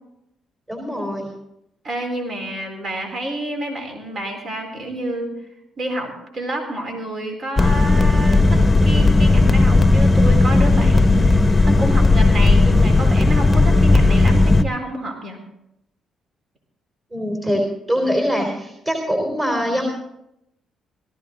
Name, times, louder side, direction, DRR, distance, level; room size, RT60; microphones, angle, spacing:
voice 1, 0.7-1.3 17.1-17.6 17.9-19.8, equal, 20° right, 1 dB, 3.9 m, -23 dB
voice 2, 1.8-5.3 5.8-15.4, right 1 dB, 50° right, 2 dB, 4.1 m, -29 dB
sound 1, 7.6-14.6, left 2 dB, 20° left, 0.9 m, -14 dB
18.0 x 14.5 x 3.9 m, 0.82 s
cardioid pair, 90°, 0 cm